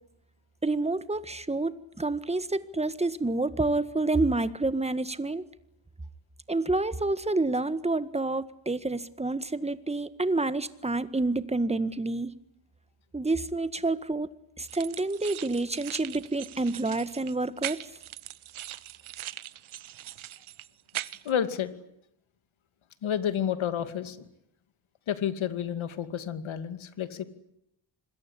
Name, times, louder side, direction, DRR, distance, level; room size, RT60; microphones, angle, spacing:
voice 1, 0.6-5.4 6.5-12.3 13.1-14.3 14.6-17.8, right 2 dB, 15° right, 13 dB, 1.7 m, -28 dB
sound 1, 14.7-21.3, right 13 dB, 85° right, 1.1 m, -41 dB
voice 2, 21.2-21.8 23.0-24.3 25.1-27.2, left 9 dB, 80° left, 11 dB, 2.5 m, -30 dB
26.0 x 21.5 x 9.9 m, 0.78 s
cardioid pair, 100°, 47 cm